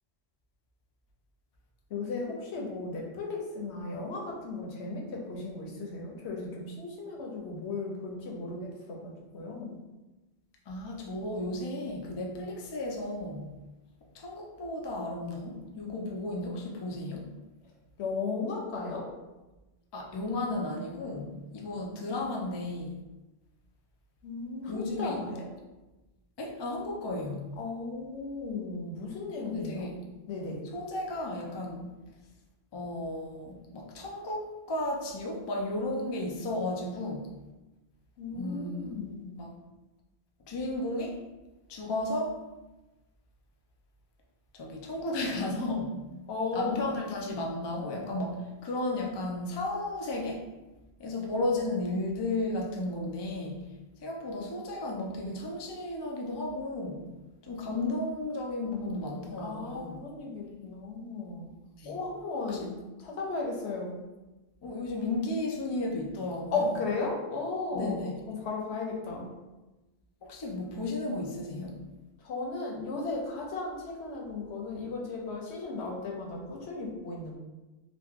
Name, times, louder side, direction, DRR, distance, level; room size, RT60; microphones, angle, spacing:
voice 1, 1.9-9.7 18.0-19.0 24.2-25.5 27.6-29.9 30.3-30.6 38.2-39.4 46.3-46.9 51.5-51.7 57.7-57.9 58.7-59.1 59.4-61.5 61.8-62.7 63.0-64.0 66.5-69.3 72.2-77.4, left 3 dB, 85° left, -1 dB, 1.0 m, -35 dB
voice 2, 10.7-13.6 14.1-17.3 19.9-23.0 24.7-25.2 26.4-27.5 29.5-30.0 30.7-31.9 32.7-37.3 38.3-39.1 39.4-39.5 40.5-41.2 41.7-42.4 44.5-46.0 46.5-50.4 51.0-53.6 54.0-57.0 57.4-60.0 61.8-62.0 62.5-62.7 64.6-66.7 67.7-68.1 70.2-71.8, left 2 dB, 45° left, 0 dB, 0.3 m, -34 dB
3.0 x 2.2 x 3.5 m, 1.1 s
omnidirectional pair, 1.1 m